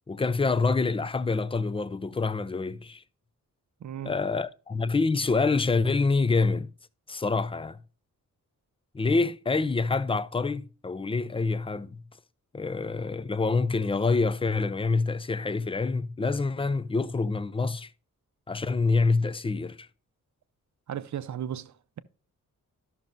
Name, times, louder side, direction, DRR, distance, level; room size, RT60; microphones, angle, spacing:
voice 1, 0.1-3.0 4.0-6.7 7.1-7.8 8.9-12.0 12.5-17.9 18.5-19.9, left 3 dB, 15° left, 0.3 m, -26 dB
voice 2, 3.8-4.1 20.9-22.0, right 9 dB, 60° right, 0.6 m, -35 dB
13.5 x 6.1 x 2.6 m
wide cardioid pair, 155°, 33 cm